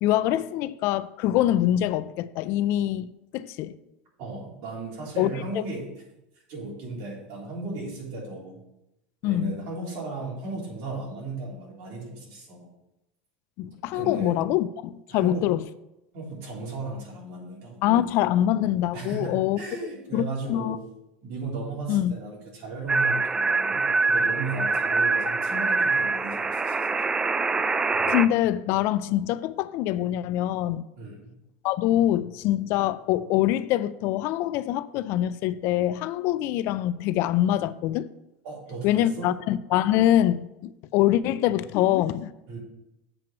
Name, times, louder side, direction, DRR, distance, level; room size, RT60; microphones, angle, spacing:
voice 1, 0.0-3.7 5.2-5.4 9.2-9.6 13.6-15.6 17.8-19.6 20.1-20.8 21.9-22.1 27.6-27.7 28.1-30.9 31.6-38.1 38.8-42.3, left 13 dB, 55° left, 0.4 m, -24 dB
voice 2, 4.2-5.8 6.3-8.6 9.2-12.7 13.9-14.3 15.1-15.5 16.1-17.8 18.9-20.8 21.2-27.1 31.0-31.3 38.4-39.3 42.5-42.6, right 3 dB, 55° right, 3.5 m, -36 dB
sound 1, 22.9-28.3, right 3 dB, 15° right, 0.4 m, -24 dB
7.6 x 4.5 x 6.1 m
supercardioid pair, 120°, 5 cm